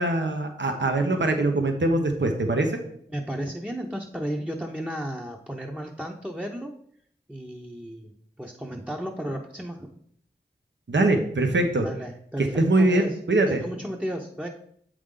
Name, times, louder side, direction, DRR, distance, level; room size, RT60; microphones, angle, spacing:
voice 1, 0.0-2.8 10.9-11.9 12.4-13.6, right 2 dB, 85° right, 4 dB, 0.9 m, -23 dB
voice 2, 3.1-6.8 7.3-8.1 8.4-10.0 11.8-13.2 13.4-14.5, equal, 5° right, 1 dB, 0.7 m, -34 dB
7.9 x 5.0 x 3.7 m, 0.64 s
wide cardioid pair, 50°, 18 cm